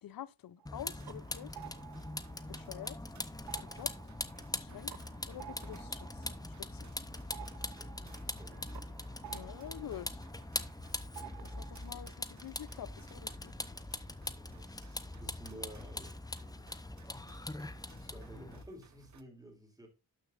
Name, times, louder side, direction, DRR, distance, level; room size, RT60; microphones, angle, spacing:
voice 1, 0.0-1.6 2.5-3.0 3.7-3.9 4.5-4.9 5.3-6.9 9.3-10.2 11.4-13.6, left 11 dB, 65° left, 0.6 m, -47 dB
sound 1, 0.6-3.1 3.4-10.8 11.2-12.0, right 13 dB, 85° right, 0.7 m, -53 dB
Vehicle, 0.7-18.6, left 2 dB, 10° left, 0.6 m, -42 dB
sound 2, 0.9-19.2, right 5 dB, 50° right, 0.9 m, -61 dB
voice 2, 7.7-8.6 14.3-16.1 18.0-19.9, right 1 dB, 10° right, 2.8 m, -53 dB
12.0 x 6.5 x 2.5 m
wide cardioid pair, 120°, 38 cm